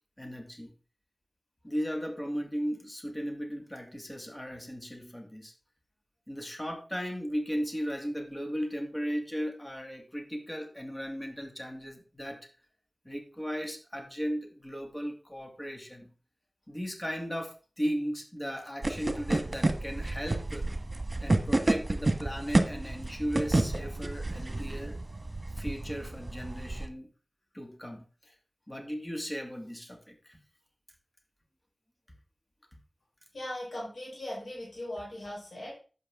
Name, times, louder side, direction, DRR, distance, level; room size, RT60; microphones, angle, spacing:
voice 1, 0.2-0.7 1.6-5.5 6.3-12.5 13.0-16.1 16.7-20.7 21.2-25.0 25.5-27.1 27.5-28.3 28.7-30.4, equal, 25° left, 3 dB, 2.4 m, -36 dB
sound 1, 18.8-26.9, right 2 dB, 45° right, 1.5 m, -30 dB
voice 2, 33.3-35.8, left 1 dB, 80° left, -4 dB, 4.6 m, -39 dB
11.5 x 8.2 x 3.8 m, 0.37 s
wide cardioid pair, 45°, 0 cm